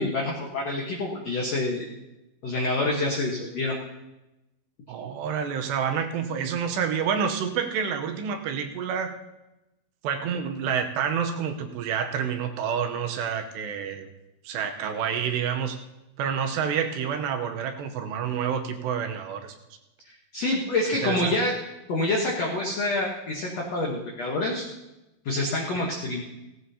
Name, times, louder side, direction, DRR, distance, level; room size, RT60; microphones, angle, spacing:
voice 1, 0.0-1.9 2.4-3.8 20.3-21.5 21.9-24.6 25.2-26.2, left 2 dB, 85° left, -1 dB, 1.4 m, -27 dB
voice 2, 4.9-9.1 10.0-14.1 14.4-15.8 16.2-19.5 21.0-21.4 25.8-25.9, right 7 dB, 80° right, 5 dB, 3.0 m, -28 dB
17.0 x 15.5 x 2.8 m, 0.98 s
omnidirectional pair, 5.1 m